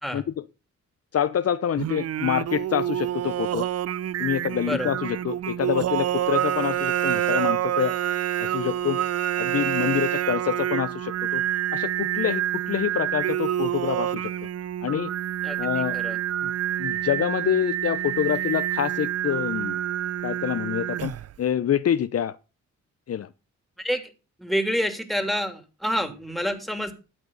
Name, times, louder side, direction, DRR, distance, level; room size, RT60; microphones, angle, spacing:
voice 1, 0.1-0.4 1.1-3.7 4.2-7.9 8.4-9.0 9.4-11.4 11.7-14.3 14.8-15.1 15.6-16.0 16.4-16.5 16.8-19.8 20.2-22.4 23.1-23.3, left 9 dB, 50° left, 0.7 m, -26 dB
Singing, 1.8-21.4, right 11 dB, 55° right, 0.5 m, -27 dB
voice 2, 15.4-16.2 23.8-24.0 24.4-26.9, equal, ahead, 3.0 m, -28 dB
12.0 x 8.5 x 4.1 m
cardioid pair, 65°, 31 cm